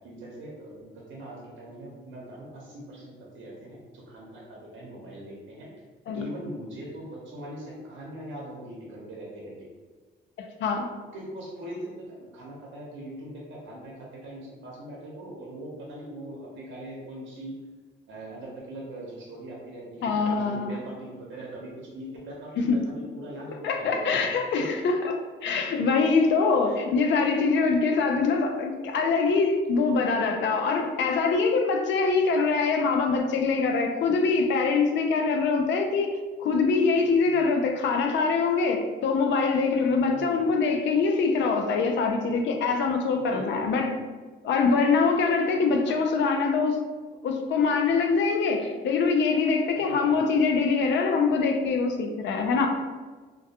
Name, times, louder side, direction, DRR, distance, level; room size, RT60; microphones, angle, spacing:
voice 1, 0.0-5.7 6.1-9.7 11.1-17.6 18.1-24.2 24.6-24.7 26.6-26.8 37.2-37.4 40.1-40.5 43.2-43.9 49.9-50.4, right 1 dB, 75° right, -4 dB, 0.7 m, -41 dB
voice 2, 10.4-10.9 20.0-20.8 22.6-22.8 23.6-43.9 44.4-46.8 47.2-52.7, left 4 dB, 65° left, 4 dB, 0.4 m, -24 dB
2.2 x 2.2 x 2.7 m, 1.4 s
cardioid pair, 90°, 20 cm